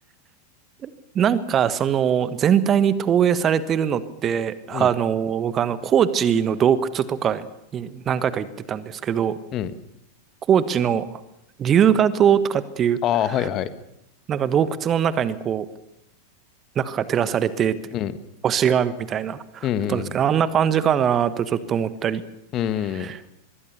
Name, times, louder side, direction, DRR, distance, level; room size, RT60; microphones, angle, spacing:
voice 1, 0.8-7.5 7.7-9.4 10.5-11.1 11.6-13.0 14.3-15.7 16.7-17.8 18.4-22.2 23.0-23.2, right 8 dB, 25° right, 15 dB, 1.3 m, -21 dB
voice 2, 13.0-13.7 17.9-18.1 19.6-20.2 22.5-23.1, left 10 dB, 35° left, 13 dB, 1.5 m, -25 dB
24.5 x 22.0 x 6.9 m, 0.80 s
figure-of-eight pair, 90°, 0 cm